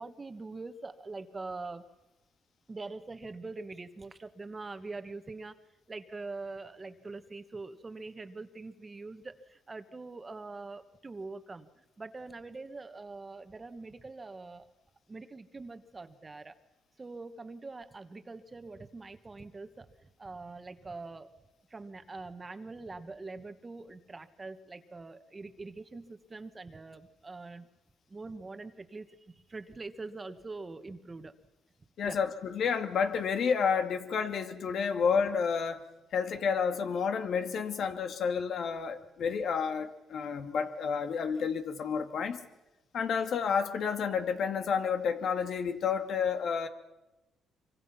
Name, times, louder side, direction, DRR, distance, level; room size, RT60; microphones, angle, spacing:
voice 1, 0.0-1.9 2.7-5.5 5.9-14.7 15.1-16.6 17.0-21.3 21.7-27.7 28.1-31.4 32.0-32.2, right 3 dB, 25° right, 10 dB, 1.5 m, -44 dB
voice 2, 32.0-35.8 36.1-42.4 42.9-46.7, left 6 dB, 65° left, 7 dB, 2.2 m, -30 dB
24.5 x 24.5 x 5.8 m, 0.99 s
cardioid pair, 90°, 0 cm